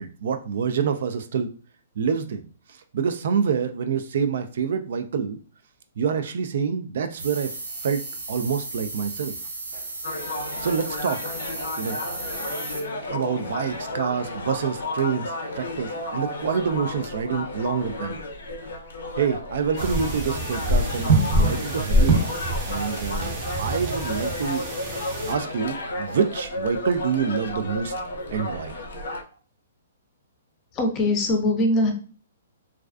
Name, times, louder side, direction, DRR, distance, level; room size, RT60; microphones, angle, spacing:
voice 1, 0.0-1.5 2.0-5.4 6.0-7.5 7.8-9.4 10.6-11.2 11.8-12.0 13.1-18.2 19.2-22.3 22.6-24.7 25.2-27.9 28.3-28.7, right 6 dB, 60° right, 8 dB, 0.3 m, -27 dB
sound 1, 7.2-12.8, right 2 dB, 80° right, 0.8 m, -35 dB
sound 2, 10.0-29.2, left 2 dB, 75° left, 0.5 m, -33 dB
sound 3, 19.8-25.3, right 1 dB, 35° right, 0.7 m, -24 dB
voice 2, 30.7-31.9, left 1 dB, 25° left, 3 dB, 0.5 m, -21 dB
2.3 x 2.3 x 2.3 m, 0.39 s
hypercardioid pair, 150°, 0 cm